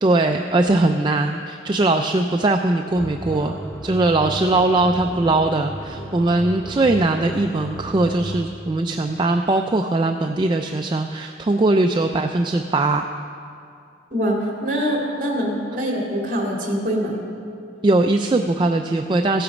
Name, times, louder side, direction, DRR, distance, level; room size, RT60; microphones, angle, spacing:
voice 1, 0.0-3.6 3.8-13.1 17.8-19.4, right 2 dB, 25° right, 5 dB, 0.3 m, -20 dB
sound 1, 2.9-8.6, right 1 dB, 5° left, 0.8 m, -34 dB
voice 2, 14.1-17.2, equal, 45° right, -1 dB, 2.4 m, -24 dB
15.0 x 9.0 x 5.1 m, 2.4 s
head